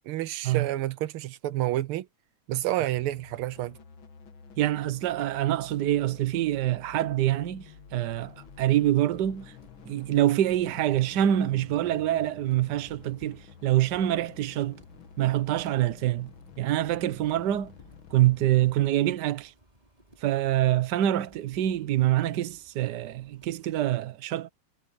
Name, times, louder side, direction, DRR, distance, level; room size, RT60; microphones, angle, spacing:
voice 1, 0.1-2.1 2.5-3.8, right 14 dB, 85° right, 1.6 m, -29 dB
sound 1, 2.9-18.9, left 6 dB, 65° left, 2.3 m, -50 dB
voice 2, 4.6-9.5 9.9-14.8 15.2-16.3 16.6-17.7 18.1-19.5 20.2-24.5, right 13 dB, 60° right, 1.4 m, -25 dB
sound 2, 8.1-24.0, right 1 dB, 20° right, 6.1 m, -60 dB
omnidirectional pair, 2.3 m